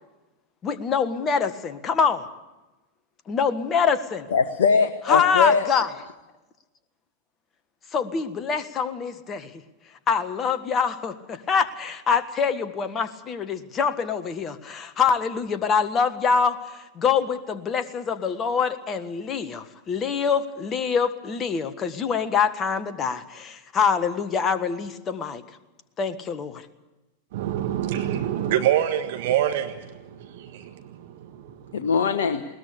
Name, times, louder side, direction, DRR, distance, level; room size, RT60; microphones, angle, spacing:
voice 1, 0.6-2.3 3.3-4.3 5.1-5.9 7.9-9.5 10.1-16.6 16.9-25.4 26.0-26.6, left 6 dB, 25° left, 11 dB, 1.6 m, -25 dB
voice 2, 4.3-5.7 31.7-32.4, left 5 dB, 60° left, 7 dB, 1.1 m, -21 dB
voice 3, 27.3-31.8, right 11 dB, 55° right, 6 dB, 1.6 m, -26 dB
21.0 x 19.5 x 8.4 m, 1.1 s
figure-of-eight pair, 90°, 0 cm